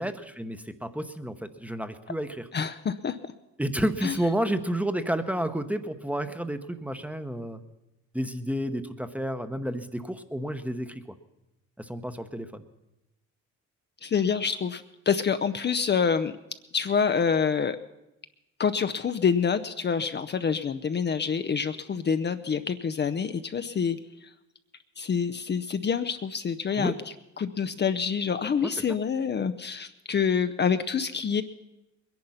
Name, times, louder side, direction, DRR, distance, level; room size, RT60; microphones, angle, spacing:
voice 1, 0.0-2.5 3.6-7.6 8.1-11.0 11.8-12.6 26.8-26.9 28.6-28.8, right 1 dB, 5° right, 10 dB, 0.9 m, -31 dB
voice 2, 2.5-3.2 4.0-4.1 14.0-16.3 16.7-17.8 18.6-24.0 25.0-26.9 27.4-31.4, left 6 dB, 35° left, 9 dB, 0.6 m, -27 dB
21.0 x 10.5 x 5.7 m, 0.93 s
cardioid pair, 90°, 30 cm